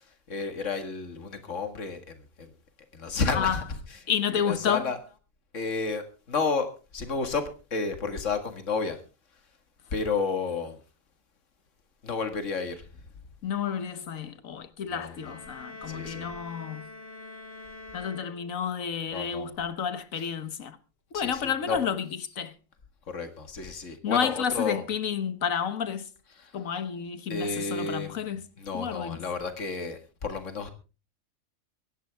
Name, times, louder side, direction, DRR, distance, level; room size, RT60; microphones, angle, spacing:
voice 1, 0.3-2.5 2.9-3.6 4.3-5.0 5.5-9.0 9.9-10.8 12.0-12.9 14.9-15.4 15.9-16.3 19.1-19.5 20.2-20.3 21.1-21.8 23.1-24.8 26.3-26.6 27.3-30.7, left 4 dB, 65° left, 2.2 m, -32 dB
voice 2, 4.1-4.9 13.4-16.9 17.9-20.8 21.1-22.1 22.4-22.5 24.0-26.1 26.5-28.4 28.7-29.3, left 7 dB, 85° left, 1.6 m, -30 dB
sound 1, 15.1-18.9, left 2 dB, 45° left, 2.7 m, -45 dB
23.5 x 11.0 x 3.5 m
omnidirectional pair, 1.4 m